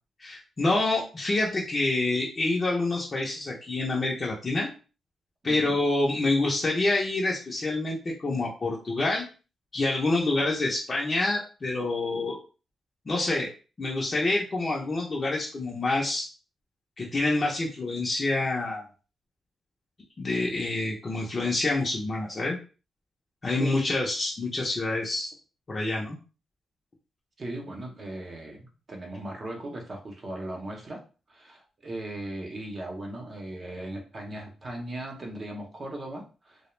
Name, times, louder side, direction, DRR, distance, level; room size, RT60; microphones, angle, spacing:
voice 1, 0.2-4.7 5.4-9.2 9.7-12.4 13.1-13.5 13.8-16.3 17.0-18.8 20.2-22.6 23.4-25.3 25.7-26.2, left 2 dB, 35° left, -3 dB, 0.5 m, -27 dB
voice 2, 5.4-5.7 23.6-23.7 27.4-31.0 31.3-36.6, right 1 dB, 40° right, 1 dB, 0.7 m, -38 dB
2.3 x 2.0 x 3.0 m, 0.35 s
cardioid pair, 95°, 0 cm